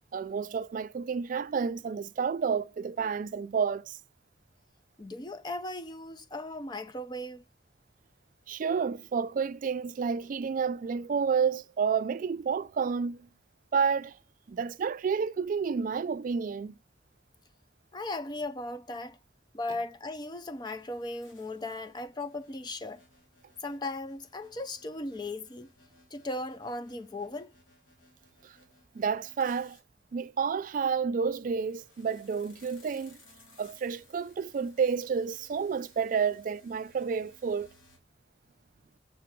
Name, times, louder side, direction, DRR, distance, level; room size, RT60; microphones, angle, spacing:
voice 1, 0.1-4.0 8.5-13.3 13.7-14.2 14.5-16.7 28.4-28.5 29.0-29.8 30.1-33.2 33.6-37.7, right 6 dB, 45° right, 0.3 m, -30 dB
voice 2, 5.0-7.4 17.9-19.2 19.5-23.0 23.6-25.7 26.1-27.5, left 2 dB, 20° left, 0.5 m, -37 dB
sound 1, 20.6-29.8 31.3-38.0, left 2 dB, 85° left, 3.1 m, -61 dB
6.7 x 4.7 x 5.8 m
head